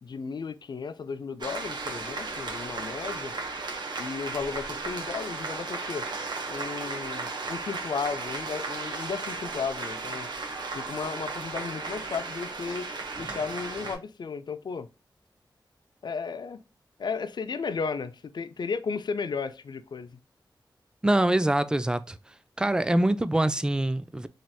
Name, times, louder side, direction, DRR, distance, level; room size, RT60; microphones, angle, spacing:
voice 1, 0.0-3.4 4.0-6.1 6.5-10.3 10.7-12.9 13.2-14.9 16.0-16.6 17.0-20.2, left 5 dB, 65° left, 0.4 m, -34 dB
sound 1, 1.4-13.9, right 3 dB, 65° right, 1.0 m, -35 dB
voice 2, 21.0-22.2 22.6-24.3, right 1 dB, 10° right, 0.3 m, -24 dB
3.2 x 2.9 x 2.2 m
cardioid pair, 65°, 8 cm